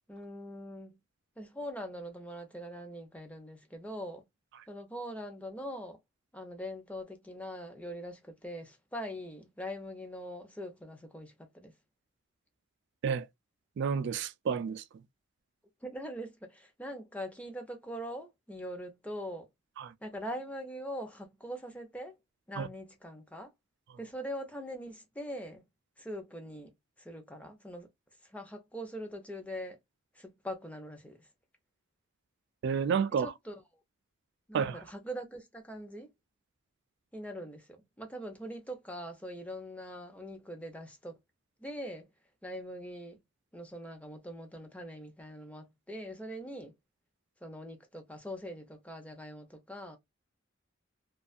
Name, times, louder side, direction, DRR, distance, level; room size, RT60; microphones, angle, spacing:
voice 1, 0.1-1.0 1.4-4.3 4.7-6.0 6.3-11.7 15.8-19.5 20.0-22.2 22.5-23.5 24.0-25.6 26.0-26.7 27.0-27.9 28.3-29.8 30.2-31.2 33.2-33.6 34.5-36.1 37.1-41.1 41.6-42.1 42.4-43.2 43.5-46.7 47.4-50.0, equal, 5° left, 0.6 m, -42 dB
voice 2, 13.8-14.8 19.8-19.9 22.6-22.7 32.6-33.3 34.5-34.8, right 6 dB, 60° right, 0.3 m, -30 dB
2.4 x 2.3 x 2.4 m
head